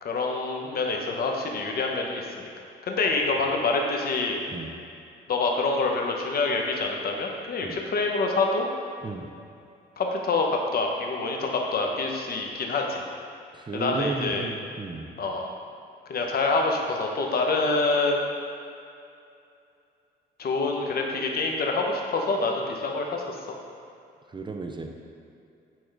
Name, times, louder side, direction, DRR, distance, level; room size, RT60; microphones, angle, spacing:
voice 1, 0.0-2.5 2.8-4.4 5.3-8.7 10.0-13.0 13.7-14.4 15.2-15.5 16.1-18.2 20.4-23.4, left 3 dB, 50° left, 1 dB, 0.9 m, -26 dB
voice 2, 13.5-15.1 24.3-25.1, right 3 dB, 25° right, 3 dB, 0.4 m, -34 dB
8.8 x 3.5 x 3.4 m, 2.5 s
cardioid pair, 90°, 20 cm